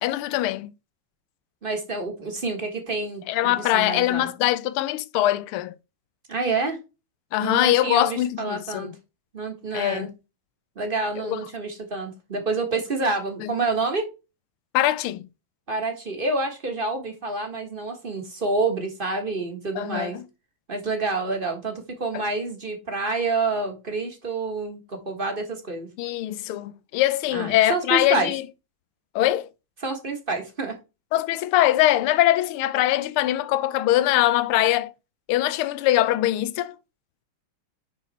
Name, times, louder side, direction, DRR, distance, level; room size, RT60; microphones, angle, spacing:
voice 1, 0.0-0.7 3.3-5.8 7.3-8.9 9.7-10.1 11.2-11.4 13.4-13.5 14.7-15.3 19.8-20.2 22.1-22.2 26.0-28.4 29.1-29.5 31.1-34.9 35.3-36.8, left 14 dB, 85° left, 1.5 m, -22 dB
voice 2, 1.6-4.3 6.3-6.8 7.4-8.9 9.3-10.1 10.7-14.1 15.7-20.2 20.7-25.9 27.3-28.3 29.8-30.7, right 3 dB, 30° right, 1.3 m, -28 dB
10.5 x 4.1 x 4.1 m
omnidirectional pair, 2.3 m